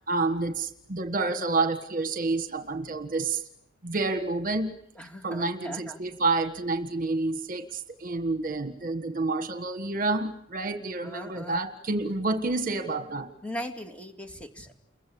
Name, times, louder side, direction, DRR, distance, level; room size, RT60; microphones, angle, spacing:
voice 1, 0.1-3.4 3.8-4.8 5.2-13.3, right 3 dB, 40° right, 8 dB, 1.6 m, -29 dB
voice 2, 4.9-6.0 11.0-11.6 13.4-14.7, equal, 5° left, 4 dB, 2.9 m, -39 dB
30.0 x 23.0 x 8.7 m, 0.74 s
head